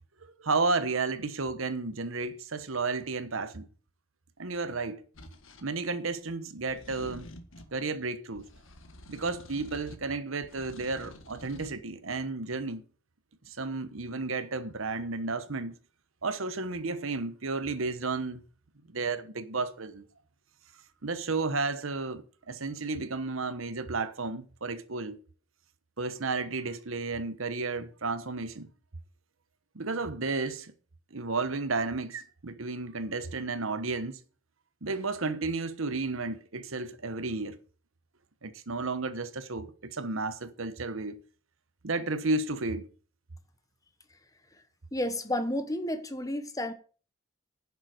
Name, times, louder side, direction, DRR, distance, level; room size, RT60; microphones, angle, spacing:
voice 1, 0.4-3.7 4.4-5.0 5.6-7.3 7.7-8.5 9.1-12.8 13.5-15.7 16.2-18.4 18.9-20.0 21.0-25.2 26.0-28.7 29.7-30.7 31.1-34.2 34.8-37.6 38.4-41.2 41.8-42.9, right 3 dB, 75° right, 1.1 m, -32 dB
sound 1, 5.1-5.7 6.7-7.8 8.3-10.1 10.4-11.8, left 1 dB, 70° left, 1.6 m, -49 dB
voice 2, 44.9-46.7, left 1 dB, 15° left, 1.1 m, -31 dB
10.5 x 7.2 x 6.6 m
head